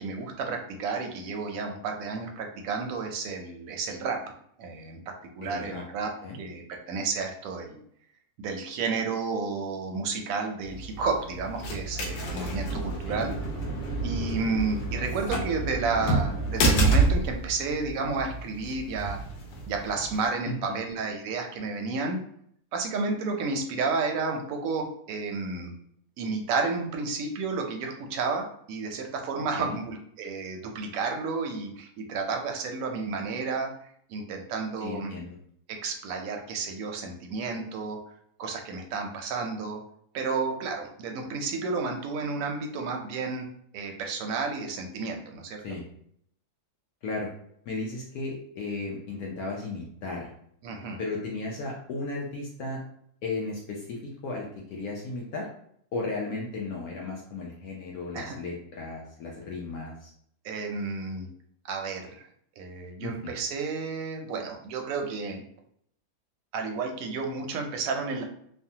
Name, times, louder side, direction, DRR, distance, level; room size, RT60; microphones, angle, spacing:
voice 1, 0.0-4.2 4.6-6.1 6.4-7.8 8.4-13.3 14.0-19.2 19.7-22.2 22.7-25.7 26.2-33.7 34.1-35.1 35.7-38.0 38.4-39.8 40.1-43.4 43.7-45.6 50.6-51.0 58.1-58.4 60.4-61.3 61.7-62.3 62.6-65.4 66.5-68.2, right 4 dB, 70° right, 3 dB, 0.9 m, -31 dB
voice 2, 5.4-5.8 6.2-6.4 13.0-13.3 20.5-20.8 29.6-29.8 34.8-35.4 45.6-45.8 47.0-47.3 47.7-50.3 51.0-52.8 53.2-55.5 55.9-60.1 63.0-63.3, left 3 dB, 70° left, -2 dB, 1.0 m, -35 dB
sound 1, 10.6-20.3, right 2 dB, 90° left, 1.2 m, -29 dB
3.3 x 2.0 x 2.7 m, 0.68 s
omnidirectional pair, 1.7 m